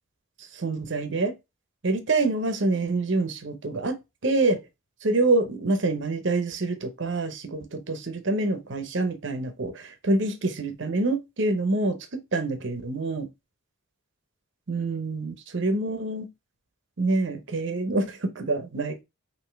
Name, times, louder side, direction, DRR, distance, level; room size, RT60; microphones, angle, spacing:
voice 1, 0.5-1.3 1.8-4.0 4.2-4.6 5.0-12.0 12.3-13.3 14.7-16.3 17.0-19.0, right 2 dB, 60° right, 0.8 m, -26 dB
5.7 x 2.8 x 3.2 m
head